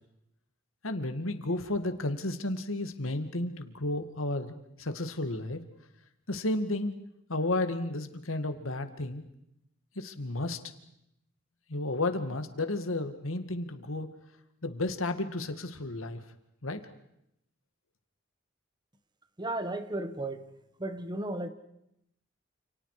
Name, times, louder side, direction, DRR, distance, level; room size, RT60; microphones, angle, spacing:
voice 1, 0.8-5.6 6.3-6.9 7.3-9.2 10.0-10.6 11.7-14.1 14.6-16.2 16.6-16.8, left 2 dB, 90° left, 8 dB, 2.1 m, -32 dB
voice 2, 19.4-20.5 20.8-21.5, right 2 dB, 20° right, 10 dB, 1.3 m, -34 dB
29.0 x 28.5 x 5.0 m, 0.80 s
head